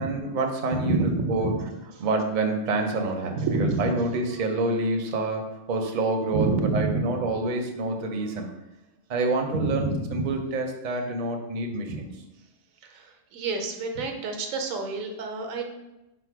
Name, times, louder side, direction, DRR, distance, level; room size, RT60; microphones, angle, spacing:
voice 1, 0.0-1.5 2.0-8.5 9.1-12.1, right 2 dB, 50° right, 3 dB, 0.6 m, -27 dB
voice 2, 0.8-1.6 3.3-4.0 6.3-7.3 9.5-10.3 11.9-12.0 12.8-15.6, right 3 dB, 85° right, 4 dB, 1.0 m, -28 dB
4.9 x 2.1 x 4.5 m, 0.95 s
omnidirectional pair, 1.4 m